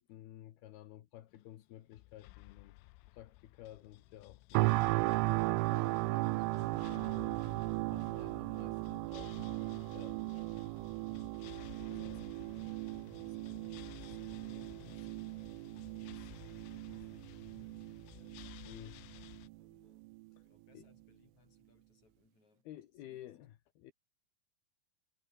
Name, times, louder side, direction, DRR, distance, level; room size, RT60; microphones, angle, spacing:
voice 1, 0.0-2.8 3.1-4.9 5.3-7.4 7.9-9.4 9.9-10.2 11.9-12.3 18.6-19.0 20.4-20.5 20.7-20.8 22.6-23.9, left 13 dB, 65° left, 2.9 m, -53 dB
sound 1, 1.3-19.5, left 20 dB, 90° left, 3.3 m, -55 dB
voice 2, 3.6-4.3 8.1-8.7 10.2-11.0 11.8-12.5 12.9-20.1 20.4-23.2, left 4 dB, 35° left, 7.0 m, -70 dB
sound 2, 4.5-19.6 20.0-20.2, right 24 dB, 85° right, 3.1 m, -36 dB
omnidirectional pair, 5.7 m